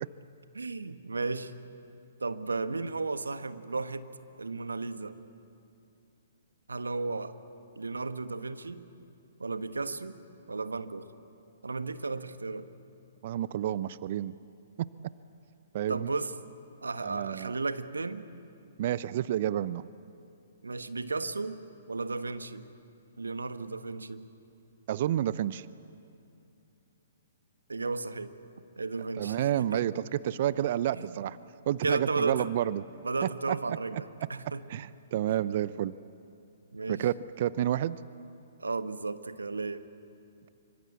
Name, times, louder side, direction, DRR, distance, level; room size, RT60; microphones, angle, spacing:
voice 1, 0.5-1.5 2.2-4.1 4.4-5.1 6.7-7.4 7.7-8.9 9.4-10.2 10.5-11.1 11.6-12.7 15.9-16.3 16.8-18.2 20.6-22.7 23.2-24.2 27.7-28.3 28.8-29.8 30.9-31.1 31.8-32.5 33.0-34.6 35.3-35.4 36.7-37.0 38.6-39.8, right 3 dB, 80° right, 11 dB, 1.4 m, -34 dB
voice 2, 13.2-14.3 14.8-14.9 15.7-16.1 17.0-17.6 18.8-19.9 24.9-25.7 29.2-31.4 31.7-32.8 33.5-33.8 34.7-35.9 36.9-38.0, right 11 dB, 50° right, 17 dB, 0.6 m, -30 dB
26.5 x 24.5 x 8.4 m, 2.6 s
figure-of-eight pair, 125°, 0 cm